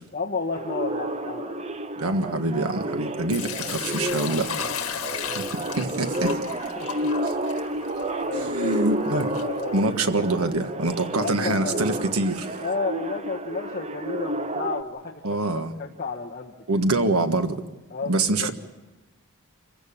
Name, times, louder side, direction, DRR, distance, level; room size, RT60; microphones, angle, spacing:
voice 1, 0.1-1.6 4.5-5.4 6.8-7.1 8.2-8.9 9.4-9.9 10.9-11.8 12.6-16.8 17.9-18.5, left 4 dB, 40° left, 1.5 m, -33 dB
sound 1, 0.5-14.8, right 1 dB, 30° right, 0.8 m, -30 dB
voice 2, 2.0-4.7 5.3-6.4 7.2-7.3 8.3-9.3 9.7-12.6 15.2-15.7 16.7-17.6 18.1-18.5, right 2 dB, 85° right, 1.5 m, -25 dB
Sink (filling or washing) / Liquid, 3.3-10.2, left 8 dB, 75° left, 2.0 m, -36 dB
26.5 x 16.0 x 8.6 m
head